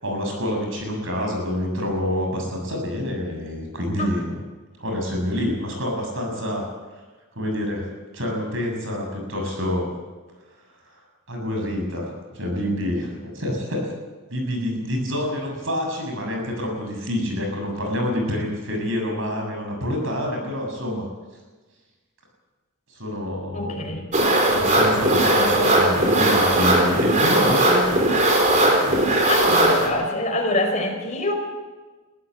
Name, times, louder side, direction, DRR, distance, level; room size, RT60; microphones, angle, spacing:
voice 1, 0.0-4.4 4.8-6.7 7.4-7.9 8.1-9.9 11.3-13.9 14.3-21.0 22.9-24.0 24.3-27.9, left 1 dB, 65° right, 2 dB, 7.4 m, -27 dB
voice 2, 23.5-24.0 29.2-31.3, left 2 dB, 35° left, 2 dB, 4.8 m, -25 dB
sound 1, 24.1-29.9, right 1 dB, 35° right, 3.9 m, -18 dB
22.5 x 15.0 x 8.6 m, 1.3 s
head